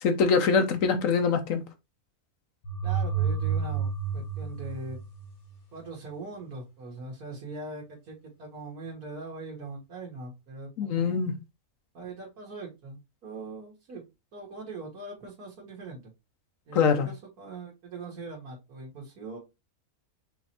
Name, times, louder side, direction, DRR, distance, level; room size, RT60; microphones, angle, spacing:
voice 1, 0.0-1.6 10.8-11.3 16.7-17.1, left 5 dB, 65° left, 1.1 m, -23 dB
sound 1, 2.6-5.5, right 6 dB, 85° left, 1.6 m, -30 dB
voice 2, 2.8-5.0 5.7-11.3 11.9-14.0 14.3-16.0 16.7-19.4, right 3 dB, 85° right, 2.0 m, -41 dB
5.7 x 3.2 x 2.8 m
omnidirectional pair, 1.6 m